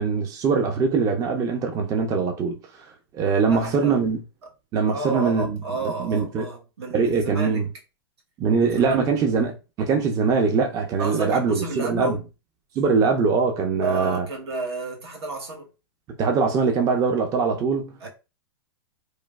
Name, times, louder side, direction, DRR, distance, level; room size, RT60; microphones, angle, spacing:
voice 1, 0.0-2.6 3.1-4.2 4.7-5.6 6.0-6.5 6.9-7.7 8.4-12.2 12.8-14.3 16.2-17.9, right 5 dB, 25° right, 0.4 m, -22 dB
voice 2, 3.5-4.0 4.9-7.7 8.8-9.3 11.0-12.2 13.8-15.7 18.0-18.1, right 3 dB, 80° right, 1.0 m, -31 dB
3.1 x 2.2 x 2.2 m
hypercardioid pair, 125°, 13 cm